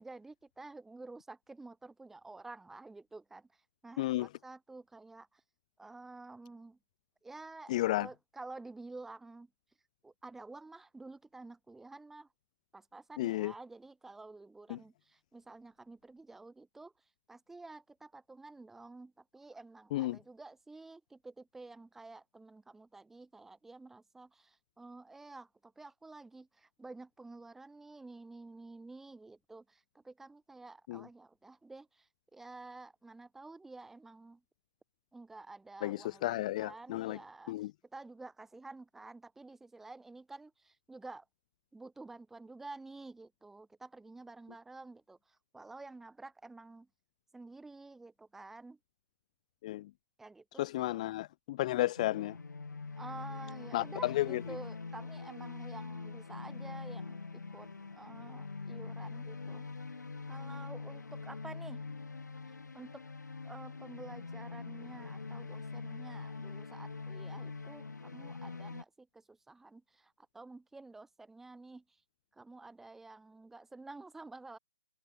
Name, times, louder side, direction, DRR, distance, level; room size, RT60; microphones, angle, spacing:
voice 1, 0.0-3.5 3.8-5.4 5.8-6.8 7.2-9.5 10.0-12.3 12.7-16.9 17.3-32.0 32.3-34.4 35.1-37.5 37.9-41.2 41.7-45.2 45.5-46.9 47.3-48.8 50.2-51.0 53.0-57.7 58.0-59.7 60.3-61.8 62.5-63.0 63.4-71.8 72.4-74.6, right 3 dB, 5° right, 0.7 m, -50 dB
voice 2, 4.0-4.3 7.7-8.1 13.2-13.5 14.7-14.8 19.9-20.2 30.9-31.1 35.8-37.2 37.5-37.7 49.6-49.9 50.6-52.4 53.7-54.4, left 16 dB, 25° left, 0.3 m, -33 dB
sound 1, 52.0-68.8, left 4 dB, 75° left, 1.0 m, -44 dB
figure-of-eight pair, 140°, 10 cm